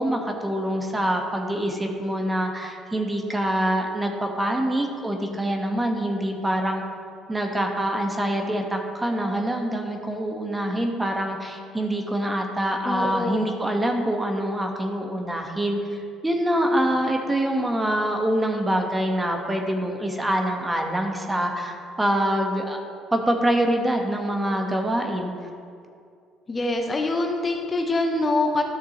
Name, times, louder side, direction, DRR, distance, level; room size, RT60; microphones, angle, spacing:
voice 1, 0.0-6.8 7.3-22.8 23.1-25.3, right 1 dB, 15° right, 3 dB, 1.3 m, -25 dB
voice 2, 12.8-13.5 26.5-28.6, left 2 dB, 30° left, 3 dB, 0.9 m, -24 dB
13.0 x 6.7 x 3.0 m, 2.4 s
hypercardioid pair, 60°, 0 cm